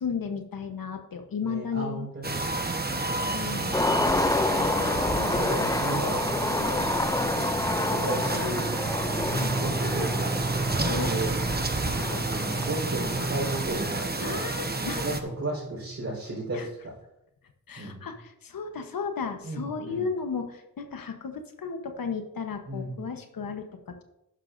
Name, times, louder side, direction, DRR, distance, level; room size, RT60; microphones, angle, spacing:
voice 1, 0.0-2.3 3.3-3.8 5.1-5.4 6.5-6.7 9.4-9.6 10.8-12.3 14.2-15.0 16.5-16.7 17.7-24.0, left 5 dB, 80° left, 6 dB, 1.0 m, -35 dB
voice 2, 1.4-2.5 2.9-3.3 3.8-4.3 5.4-7.1 8.0-8.6 9.6-10.4 10.9-11.3 11.9-14.4 15.0-15.1 15.4-16.6 17.8-18.1 19.4-20.0 22.7-23.1, right 1 dB, 50° right, -5 dB, 4.1 m, -34 dB
sound 1, 2.2-15.2, right 3 dB, 30° right, 1.1 m, -30 dB
Skateboard, 3.7-13.9, left 2 dB, 10° left, 0.3 m, -29 dB
sound 2, 9.3-16.2, right 2 dB, 55° left, 2.5 m, -35 dB
11.5 x 10.0 x 2.6 m, 0.87 s
cardioid pair, 65°, 34 cm